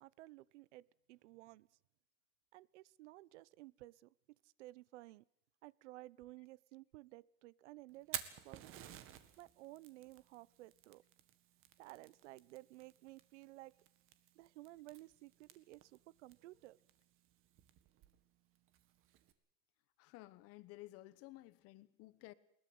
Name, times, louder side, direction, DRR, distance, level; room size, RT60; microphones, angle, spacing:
voice 1, 0.0-1.7 2.5-4.1 4.6-5.2 5.6-8.9 9.4-11.0 11.8-13.7 14.3-16.8, right 18 dB, 85° right, 0.8 m, -55 dB
Fire, 7.9-19.3, right 12 dB, 40° right, 1.8 m, -53 dB
voice 2, 20.0-22.3, left 18 dB, 45° left, 1.1 m, -55 dB
21.0 x 20.0 x 7.8 m
supercardioid pair, 150°, 34 cm